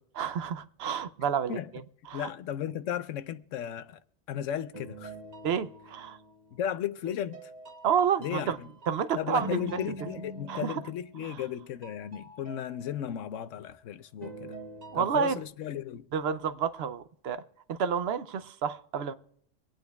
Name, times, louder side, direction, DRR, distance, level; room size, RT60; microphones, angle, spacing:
voice 1, 0.1-1.6 2.1-2.3 5.4-6.2 7.8-8.6 8.9-9.6 10.5-10.8 11.2-11.4 14.9-15.4 16.1-17.4 17.7-19.1, right 7 dB, 65° right, 0.8 m, -29 dB
voice 2, 2.1-4.0 4.3-5.1 6.5-7.5 8.2-8.7 9.2-14.6 14.9-16.1, left 10 dB, 90° left, 1.0 m, -35 dB
sound 1, 4.7-6.6 7.1-11.5 11.8-13.7 14.2-15.5, right 2 dB, 35° right, 1.2 m, -45 dB
24.5 x 9.1 x 2.3 m
omnidirectional pair, 1.3 m